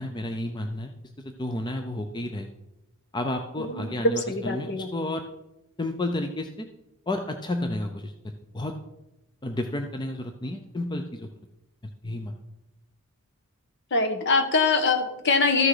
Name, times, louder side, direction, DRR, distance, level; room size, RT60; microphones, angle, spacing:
voice 1, 0.0-2.5 3.1-5.2 5.8-6.7 7.1-8.8 9.4-11.3 11.8-12.3, left 1 dB, 20° left, 5 dB, 0.6 m, -31 dB
voice 2, 3.6-4.9 13.9-15.7, left 3 dB, 50° left, 7 dB, 1.2 m, -23 dB
13.5 x 6.2 x 4.9 m, 0.91 s
head